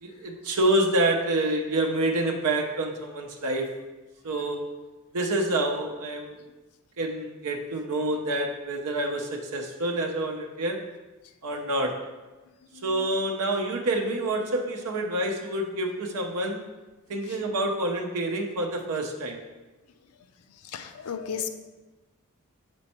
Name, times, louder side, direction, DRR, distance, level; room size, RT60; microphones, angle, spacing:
voice 1, 0.0-3.7 4.2-4.6 5.1-6.4 7.0-10.8 11.4-11.9 12.8-16.6 17.1-19.4, right 1 dB, 75° right, 2 dB, 0.6 m, -27 dB
voice 2, 12.7-13.1 20.6-21.5, left 7 dB, 80° left, 9 dB, 0.5 m, -34 dB
5.3 x 4.4 x 4.2 m, 1.2 s
head